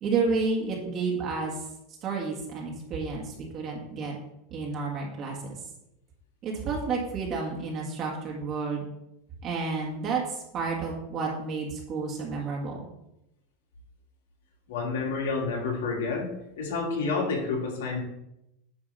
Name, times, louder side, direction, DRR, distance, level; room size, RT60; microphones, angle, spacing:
voice 1, 0.0-1.6 2.0-4.2 4.5-5.6 6.4-8.8 9.4-12.8, right 4 dB, 40° right, -2 dB, 2.0 m, -30 dB
voice 2, 14.7-18.0, left 4 dB, 85° left, -1 dB, 2.6 m, -29 dB
9.7 x 3.6 x 5.6 m, 0.84 s
supercardioid pair, 125°, 0 cm